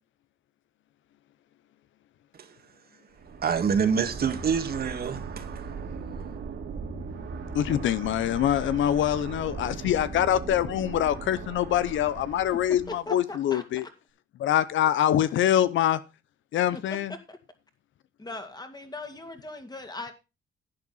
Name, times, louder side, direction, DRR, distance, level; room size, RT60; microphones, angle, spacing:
sound 1, 3.2-13.0, right 4 dB, 65° right, 3.2 m, -38 dB
voice 1, 3.4-5.6, right 6 dB, 50° right, 1.9 m, -27 dB
voice 2, 7.5-13.9 14.4-16.0 16.5-17.1, left 11 dB, 75° left, 0.8 m, -24 dB
voice 3, 12.9-13.6 14.9-15.0 16.7-16.8 17.1-17.4 18.2-20.1, left 2 dB, 20° left, 2.3 m, -39 dB
11.5 x 8.5 x 4.0 m
cardioid pair, 90°, 20 cm